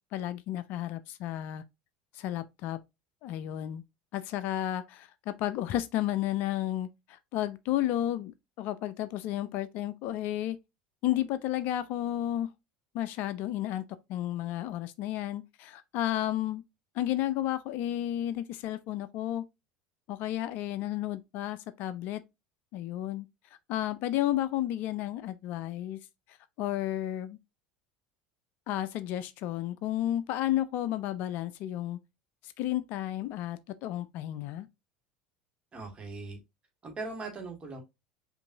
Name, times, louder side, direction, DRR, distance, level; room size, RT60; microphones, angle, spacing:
voice 1, 0.1-1.6 2.1-2.8 3.2-3.8 4.1-10.6 11.0-12.5 12.9-13.8 14.1-16.6 16.9-19.4 20.1-22.2 22.7-23.3 23.7-26.0 26.6-27.4 28.7-32.0 32.4-34.7, left 13 dB, 50° left, 0.4 m, -32 dB
voice 2, 35.7-36.4 36.8-37.8, right 3 dB, 25° right, 1.6 m, -39 dB
5.2 x 2.6 x 2.6 m
figure-of-eight pair, 70°, 4 cm